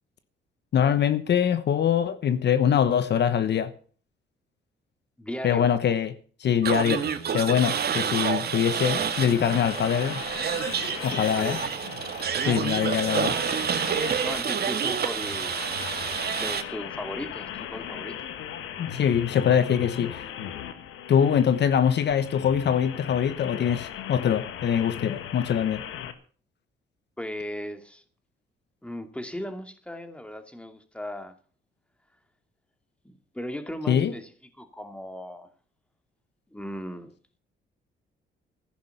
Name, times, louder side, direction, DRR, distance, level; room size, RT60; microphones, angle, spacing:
voice 1, 0.7-3.7 5.4-6.1 6.4-10.2 11.0-11.6 12.4-13.4 18.8-20.3 21.1-25.8 33.9-34.1, left 8 dB, 60° left, 1.2 m, -23 dB
voice 2, 5.2-5.7 11.3-11.6 12.4-12.9 14.2-15.7 16.3-18.3 27.2-28.0 28.8-31.4 33.0-34.3 34.6-35.5 36.5-37.1, equal, 5° left, 2.6 m, -37 dB
sound 1, 6.6-16.6, right 7 dB, 50° right, 2.0 m, -28 dB
sound 2, 9.0-26.1, left 9 dB, 90° left, 1.7 m, -38 dB
15.0 x 10.5 x 6.8 m
cardioid pair, 90°, 20 cm